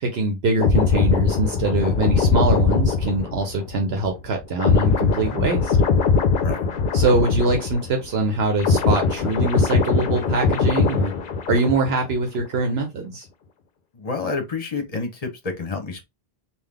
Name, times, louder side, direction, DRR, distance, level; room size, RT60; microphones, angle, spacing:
voice 1, 0.0-5.8 6.9-11.1 11.5-13.3, right 2 dB, 75° right, 1.0 m, -23 dB
sound 1, 0.6-8.1 8.3-12.1 12.4-12.6, left 4 dB, 55° left, 0.7 m, -21 dB
voice 2, 13.9-16.0, left 4 dB, 40° left, 1.0 m, -29 dB
3.8 x 2.4 x 3.4 m
omnidirectional pair, 1.0 m